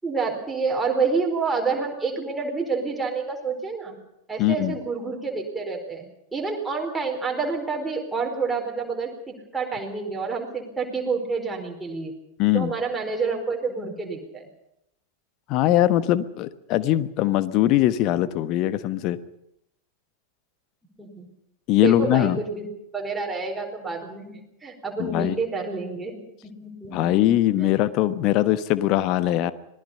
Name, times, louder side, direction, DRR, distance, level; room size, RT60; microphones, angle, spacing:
voice 1, 0.0-4.0 4.3-12.1 12.5-14.4 21.0-21.3 21.8-22.7 22.9-26.1 26.4-27.2 27.6-27.7, right 4 dB, 10° right, 0 dB, 4.7 m, -28 dB
voice 2, 4.4-4.8 12.4-12.7 15.5-19.2 21.7-22.4 25.0-25.4 26.9-29.5, left 14 dB, 40° left, 14 dB, 1.2 m, -21 dB
26.0 x 19.5 x 5.6 m, 0.81 s
figure-of-eight pair, 90°, 0 cm